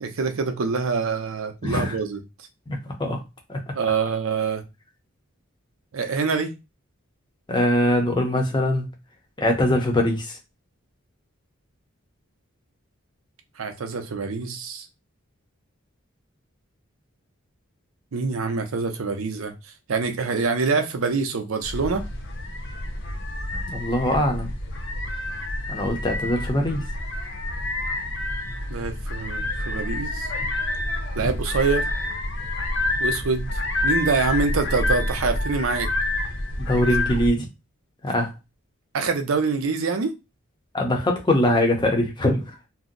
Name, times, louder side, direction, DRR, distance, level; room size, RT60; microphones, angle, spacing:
voice 1, 0.0-2.2 3.7-4.6 5.9-6.5 13.6-14.8 18.1-19.5 19.9-22.1 28.7-30.3 31.1-31.9 33.0-35.9 38.9-40.2, right 4 dB, 75° right, 0.6 m, -25 dB
voice 2, 1.6-2.0 2.7-3.2 3.5-3.6 7.5-8.9 9.4-10.4 23.7-24.5 25.7-26.8 36.6-37.5 38.0-38.3 40.7-42.6, left 1 dB, 20° left, 0.6 m, -22 dB
sound 1, 21.6-37.3, left 1 dB, 55° left, 0.6 m, -28 dB
2.6 x 2.0 x 3.7 m
head